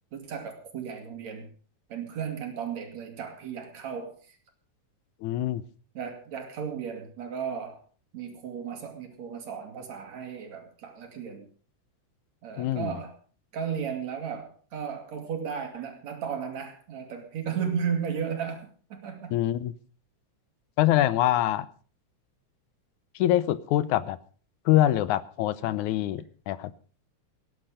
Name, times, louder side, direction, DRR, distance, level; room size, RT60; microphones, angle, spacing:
voice 1, 0.1-1.5 1.9-4.2 6.0-7.8 8.1-11.5 12.4-13.2 13.5-19.4, right 7 dB, 65° right, 4 dB, 3.7 m, -34 dB
voice 2, 5.2-5.6 12.6-12.9 19.3-19.7 20.8-21.7 23.2-24.2 24.7-26.7, left 13 dB, 85° left, 16 dB, 2.3 m, -24 dB
18.0 x 10.5 x 5.2 m, 0.40 s
omnidirectional pair, 3.4 m